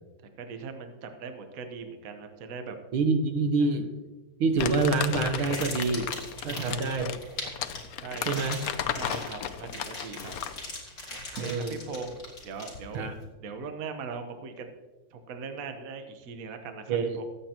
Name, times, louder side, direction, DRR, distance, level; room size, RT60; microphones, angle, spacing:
voice 1, 0.4-2.8 3.6-3.7 6.5-7.2 8.0-8.5 9.0-10.3 11.1-12.2 12.4-13.1 13.4-14.7 15.1-17.2, right 5 dB, 50° right, 6 dB, 1.3 m, -40 dB
voice 2, 2.9-3.9 4.4-6.1 6.4-7.1 8.2-8.6 11.4-11.7 12.9-13.2 16.9-17.2, right 4 dB, 75° right, 7 dB, 1.8 m, -26 dB
Crumpling crinkling, 4.6-10.6, left 9 dB, 90° left, 0.7 m, -34 dB
sound 1, 4.7-13.1, left 2 dB, 45° left, 3.5 m, -40 dB
22.5 x 8.8 x 2.9 m, 1.2 s
omnidirectional pair, 2.4 m